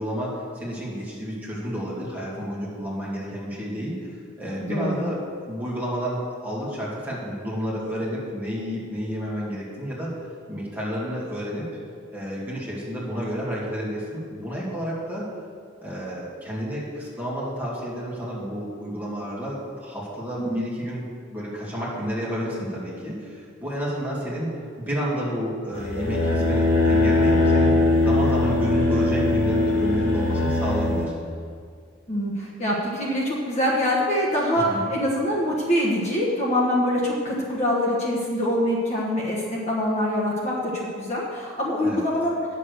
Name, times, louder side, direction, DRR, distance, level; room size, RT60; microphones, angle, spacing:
voice 1, 0.0-4.1 4.4-5.2 5.4-10.1 10.5-11.7 12.1-15.2 15.8-21.0 21.3-31.1 34.5-34.8 41.8-42.0, equal, 10° right, -7 dB, 2.5 m, -30 dB
voice 2, 4.7-5.1 20.4-20.7 32.1-42.4, equal, 35° left, -4 dB, 1.3 m, -24 dB
sound 1, 25.7-31.0, left 2 dB, 80° left, 2.5 m, -21 dB
9.5 x 6.8 x 6.5 m, 2.1 s
head